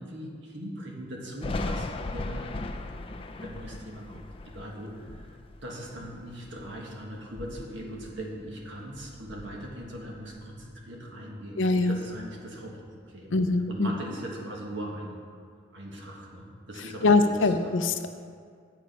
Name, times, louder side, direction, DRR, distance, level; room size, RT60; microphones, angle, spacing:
voice 1, 0.0-2.5 3.1-11.6 11.9-12.8 13.1-13.4 13.7-15.2 15.7-17.5, equal, 65° right, -1 dB, 1.5 m, -40 dB
Thunder, 1.4-6.9 7.2-8.7 8.9-10.7, left 2 dB, 25° left, 0.4 m, -38 dB
voice 2, 11.6-12.0 13.3-13.9 17.0-18.1, left 3 dB, 70° left, 8 dB, 0.6 m, -23 dB
8.5 x 6.8 x 5.2 m, 2.1 s
head